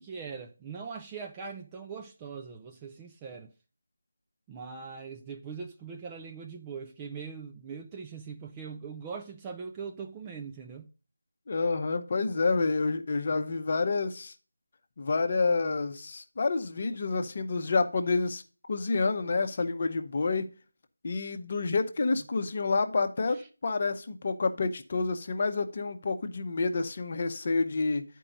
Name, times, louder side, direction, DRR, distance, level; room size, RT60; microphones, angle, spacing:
voice 1, 0.0-3.5 4.5-10.9, right 5 dB, 15° right, 0.4 m, -41 dB
voice 2, 11.5-14.3 15.0-18.4 18.7-20.5 21.0-28.0, left 3 dB, 35° left, 0.8 m, -28 dB
9.8 x 4.6 x 5.1 m
figure-of-eight pair, 165°, 0 cm